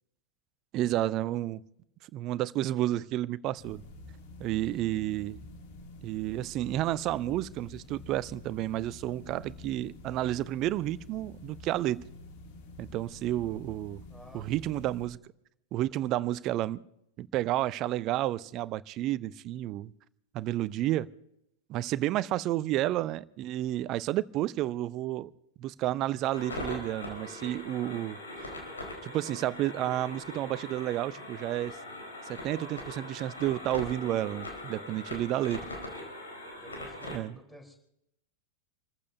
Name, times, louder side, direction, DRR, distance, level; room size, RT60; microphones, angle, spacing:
voice 1, 0.7-1.6 2.1-3.8 4.4-5.4 6.0-12.1 12.8-14.0 14.3-15.2 15.7-16.8 17.2-19.9 20.3-21.1 21.7-25.3 25.6-28.2 29.0-31.8 32.3-35.6 37.1-37.3, right 14 dB, 35° right, 0.6 m, -31 dB
sound 1, 3.6-15.1, left 2 dB, 50° left, 2.7 m, -48 dB
voice 2, 4.7-5.0 14.1-14.7 35.3-35.9 36.6-37.8, equal, 5° left, 4.1 m, -53 dB
sound 2, 26.3-37.2, left 1 dB, 75° left, 4.6 m, -41 dB
28.5 x 15.0 x 2.8 m
figure-of-eight pair, 90°, 0 cm